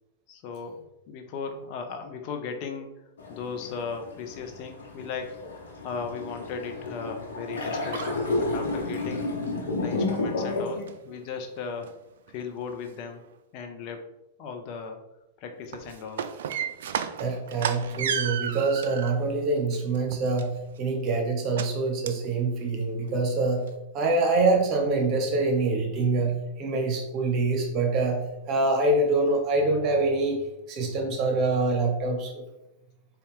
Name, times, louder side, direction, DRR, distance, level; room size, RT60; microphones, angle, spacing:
voice 1, 0.3-2.9 3.3-9.3 9.8-11.9 12.3-13.2 13.5-14.0 14.4-15.0 15.4-16.3, left 5 dB, 50° left, 5 dB, 0.6 m, -37 dB
sound 1, 3.2-10.8, left 2 dB, 80° left, 0.9 m, -31 dB
sound 2, 7.6-8.9 9.4-9.6 10.0-10.5 10.8-11.4 11.8-12.0 12.3-12.9 13.2-13.3 15.6-19.2 19.7-20.8 21.6-21.7 22.1-22.3 22.6-22.7 23.1-23.2 23.6-23.7, right 8 dB, 70° right, 0.3 m, -34 dB
voice 2, 17.2-23.7 23.9-30.4 30.7-32.4, right 3 dB, 40° right, 3 dB, 1.0 m, -25 dB
4.0 x 2.3 x 3.6 m, 0.92 s
hypercardioid pair, 105°, 0 cm